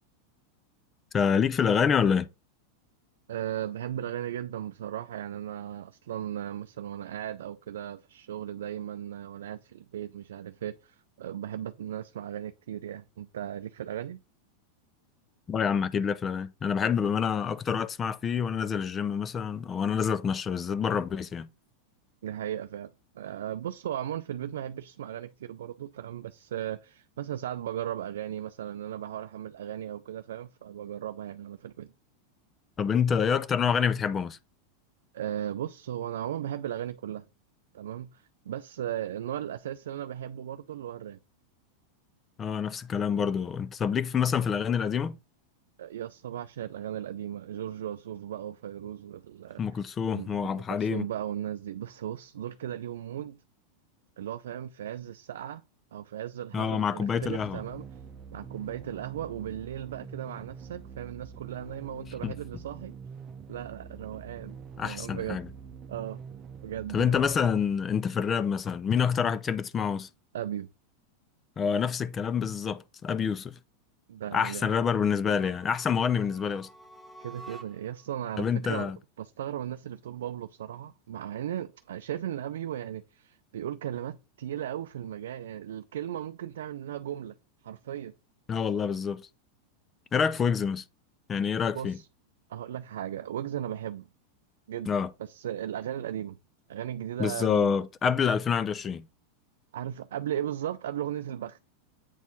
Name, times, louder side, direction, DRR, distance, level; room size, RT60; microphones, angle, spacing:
voice 1, 1.1-2.3 15.5-21.5 32.8-34.4 42.4-45.2 49.6-51.1 56.5-57.6 62.2-62.4 64.8-65.5 66.9-70.1 71.6-73.6 74.3-76.7 78.4-79.0 88.5-89.2 90.1-90.8 91.3-92.0 94.9-95.1 97.2-99.1, left 7 dB, 25° left, 0.5 m, -27 dB
voice 2, 3.3-14.2 22.2-31.9 35.1-37.2 37.7-41.2 45.8-49.6 50.1-53.4 54.2-55.6 55.9-57.8 58.3-63.0 63.5-64.6 64.8-65.4 65.9-66.2 66.6-67.4 70.3-70.7 74.1-74.8 77.2-87.3 87.6-88.1 91.7-92.1 92.5-94.1 94.7-94.9 95.2-96.4 96.7-97.7 99.7-101.6, right 10 dB, 80° right, 0.4 m, -36 dB
sound 1, 57.2-67.9, right 6 dB, 30° right, 0.8 m, -45 dB
sound 2, 75.3-78.0, right 2 dB, ahead, 1.3 m, -49 dB
8.2 x 4.3 x 4.1 m
hypercardioid pair, 115°, 0 cm